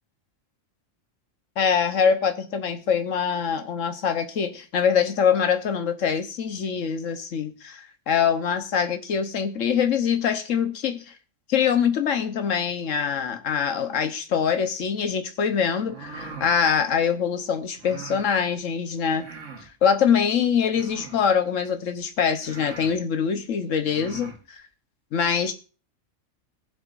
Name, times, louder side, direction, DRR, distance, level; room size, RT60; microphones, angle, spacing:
voice 1, 1.6-11.1 11.5-19.3 19.6-24.6 25.1-25.5, left 7 dB, 85° left, 8 dB, 1.4 m, -24 dB
sound 1, 15.8-16.5 17.8-18.3 19.1-19.7 20.7-21.3 22.0-22.1 22.4-23.0 23.8-24.4, right 4 dB, 75° right, 1.8 m, -41 dB
20.5 x 7.7 x 2.6 m, 0.35 s
omnidirectional pair, 1.3 m